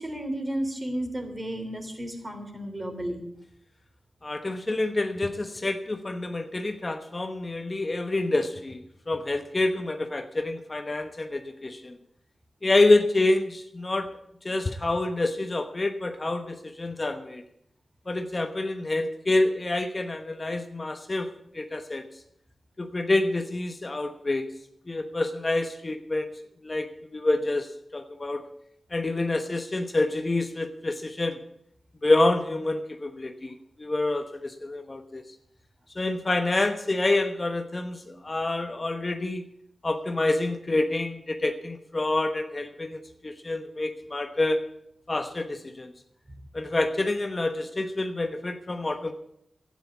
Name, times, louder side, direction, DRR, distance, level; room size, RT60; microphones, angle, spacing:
voice 1, 0.0-3.2 38.1-38.2, right 1 dB, 25° right, 4 dB, 3.2 m, -33 dB
voice 2, 4.2-12.0 12.6-14.1 14.4-17.4 18.1-21.3 21.5-22.0 22.8-24.5 24.9-26.3 26.6-27.7 27.9-28.4 28.9-31.4 32.0-35.2 36.0-39.4 39.8-44.6 45.1-45.9 46.5-49.1, left 2 dB, 35° left, 7 dB, 1.0 m, -27 dB
12.5 x 9.3 x 8.3 m, 0.73 s
wide cardioid pair, 80°, 0 cm